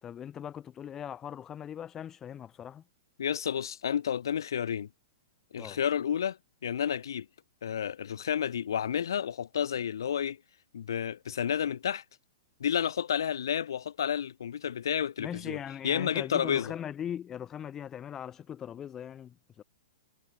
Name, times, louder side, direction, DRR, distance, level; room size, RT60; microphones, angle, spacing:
voice 1, 0.0-2.8 5.6-5.8 15.2-19.6, left 9 dB, 20° left, 1.2 m, -40 dB
voice 2, 3.2-4.9 5.5-6.4 6.6-7.3 7.6-10.4 10.7-12.0 12.6-15.6 15.8-16.7, left 8 dB, 85° left, 0.9 m, -30 dB
hypercardioid pair, 145°, 2 cm